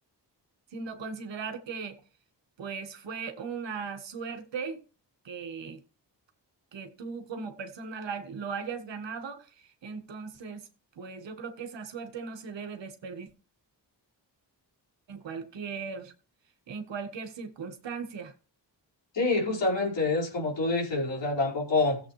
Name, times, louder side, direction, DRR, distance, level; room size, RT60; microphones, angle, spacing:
voice 1, 0.7-2.0 2.6-4.8 5.2-5.8 6.7-10.7 11.0-13.3 15.1-16.1 16.7-18.3, right 5 dB, 85° right, 1.6 m, -38 dB
voice 2, 19.1-22.0, left 3 dB, 80° left, 4.9 m, -27 dB
16.5 x 7.8 x 3.2 m
cardioid pair, 80°, 43 cm